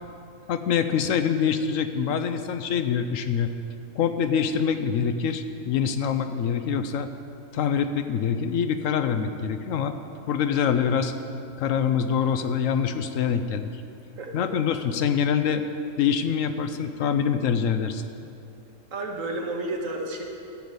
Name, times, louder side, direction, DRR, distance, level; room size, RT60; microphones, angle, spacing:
voice 1, 0.5-3.5 3.9-7.1 7.5-9.9 10.3-11.1 11.6-13.7 14.3-15.6 16.0-18.0, left 7 dB, 70° left, 9 dB, 0.9 m, -25 dB
voice 2, 14.2-14.5 18.9-20.2, right 2 dB, 70° right, 0 dB, 1.7 m, -31 dB
13.5 x 5.2 x 7.9 m, 2.7 s
omnidirectional pair, 1.5 m